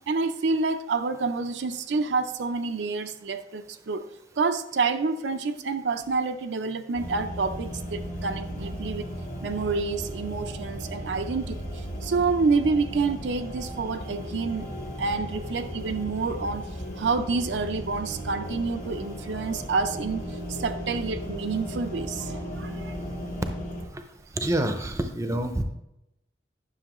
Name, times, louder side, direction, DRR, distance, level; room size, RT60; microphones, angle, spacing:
voice 1, 0.1-4.1 4.4-9.1 9.4-14.7 15.0-16.7 16.9-20.2 20.5-23.0, right 4 dB, 70° right, 8 dB, 0.5 m, -28 dB
sound 1, 6.9-23.8, equal, 45° left, 1.4 m, -36 dB
voice 2, 24.4-25.6, right 1 dB, 15° right, 7 dB, 0.5 m, -27 dB
9.9 x 6.3 x 3.0 m, 0.88 s
head